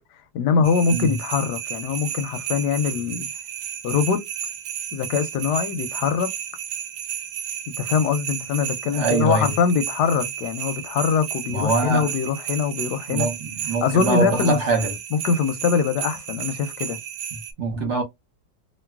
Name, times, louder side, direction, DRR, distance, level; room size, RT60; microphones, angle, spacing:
voice 1, 0.3-3.3 3.8-4.2 4.9-6.3 7.7-13.3 13.8-14.6 15.1-17.0, left 6 dB, 75° left, 1.0 m, -23 dB
sound 1, 0.6-17.5, right 9 dB, 70° right, 1.2 m, -33 dB
voice 2, 8.9-9.5 11.5-12.1 13.1-15.0 17.3-18.0, right 4 dB, 55° right, 0.8 m, -24 dB
3.0 x 2.5 x 2.2 m
omnidirectional pair, 2.0 m